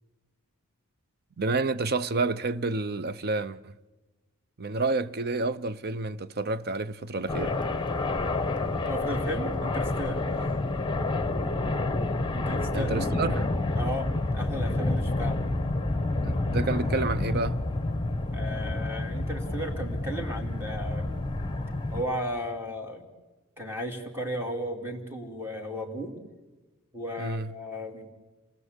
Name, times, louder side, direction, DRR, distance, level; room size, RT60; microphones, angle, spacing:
voice 1, 1.4-3.7 4.6-7.6 12.7-13.5 16.2-17.6 27.2-27.5, right 3 dB, 45° right, 0.7 m, -29 dB
sound 1, 7.3-22.0, left 2 dB, 20° left, 1.3 m, -29 dB
voice 2, 8.8-10.2 12.3-13.2 13.7-15.4 18.3-21.2 21.9-23.0 23.6-26.1 26.9-28.1, equal, 10° right, 2.8 m, -35 dB
28.0 x 19.5 x 8.1 m
head